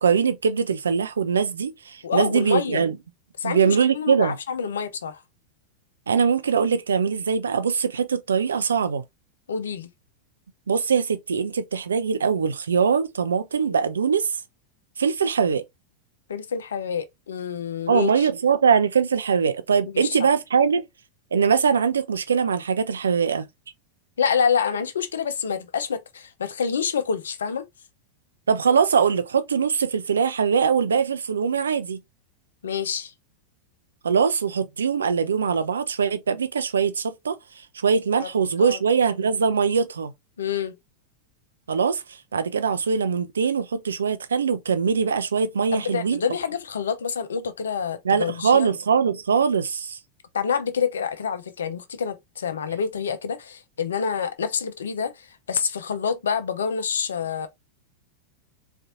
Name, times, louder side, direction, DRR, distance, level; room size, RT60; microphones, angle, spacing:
voice 1, 0.0-3.0 3.4-4.4 6.1-9.0 10.7-14.3 15.0-15.6 17.9-20.8 21.3-23.5 28.5-32.0 34.0-37.4 37.8-40.1 41.7-42.0 42.3-46.2 48.0-50.0, right 6 dB, 70° right, 0.4 m, -22 dB
voice 2, 2.0-2.8 3.4-5.2 9.5-9.9 16.3-18.3 19.9-20.2 24.2-27.7 32.6-33.1 38.2-38.3 38.6-38.8 40.4-40.8 45.7-48.7 50.3-57.5, left 6 dB, 65° left, 0.5 m, -27 dB
4.0 x 2.5 x 2.8 m
figure-of-eight pair, 90°, 0 cm